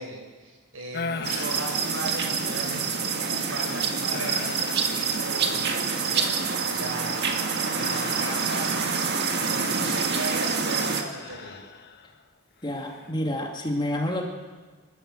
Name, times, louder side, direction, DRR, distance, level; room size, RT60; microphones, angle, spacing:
voice 1, 0.0-8.9 9.3-11.6, right 2 dB, 65° right, 1 dB, 5.8 m, -37 dB
sound 1, 0.9-2.6 3.2-3.5 4.0-5.9 7.7-9.1 11.1-12.2 12.6-13.1, left 4 dB, 45° left, 1.4 m, -39 dB
sound 2, 1.2-11.0, right 5 dB, 50° right, 1.9 m, -27 dB
voice 2, 12.6-14.2, left 1 dB, 20° left, 2 dB, 2.3 m, -28 dB
27.0 x 13.0 x 7.8 m, 1.4 s
head